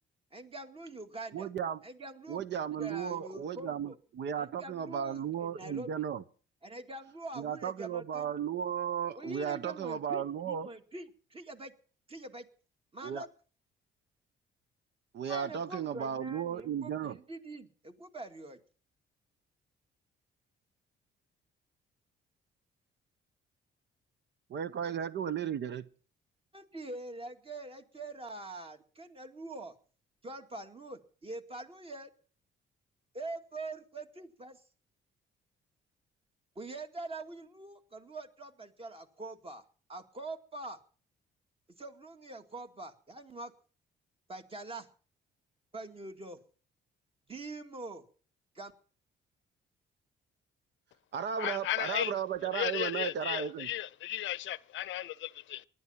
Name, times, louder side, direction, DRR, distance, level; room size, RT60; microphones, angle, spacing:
voice 1, 0.3-1.5 1.8-2.4 2.8-4.0 4.4-6.1 6.6-8.3 9.2-11.7 12.1-12.5 12.9-13.3 15.2-18.6 26.5-29.8 30.2-32.1 33.1-34.6 36.6-39.6 39.9-40.8 41.8-43.5 44.3-44.9 45.7-46.4 47.3-48.1 48.5-48.7, right 2 dB, 30° right, 2.1 m, -44 dB
voice 2, 1.3-1.8 2.3-6.2 7.4-10.7 13.0-13.3 15.1-17.2 24.5-25.8 51.1-53.7, right 8 dB, 60° right, 0.9 m, -35 dB
voice 3, 51.4-52.1 52.5-55.7, left 14 dB, 75° left, 0.6 m, -35 dB
19.0 x 11.5 x 5.8 m
cardioid pair, 90°, 20 cm